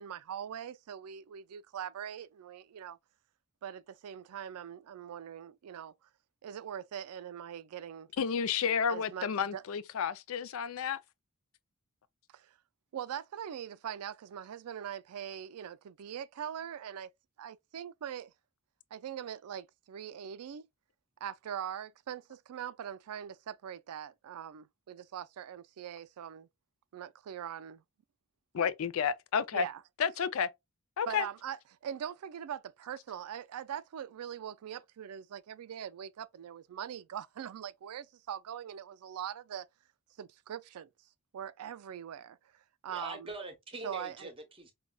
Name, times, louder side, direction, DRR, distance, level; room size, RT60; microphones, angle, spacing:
voice 1, 0.0-3.0 3.6-5.9 6.4-8.1 8.9-9.6 12.3-12.5 12.9-17.1 17.4-18.3 18.9-20.6 21.2-26.5 26.9-27.8 29.5-29.8 31.1-39.7 40.2-40.9 41.3-42.4 42.8-43.3 43.8-44.3, right 9 dB, 90° right, 0.4 m, -42 dB
voice 2, 8.2-11.0 28.5-29.7 30.0-30.5 31.0-31.3, left 7 dB, 70° left, 0.4 m, -31 dB
voice 3, 42.9-44.7, right 2 dB, 25° right, 0.8 m, -43 dB
5.1 x 2.2 x 2.2 m
head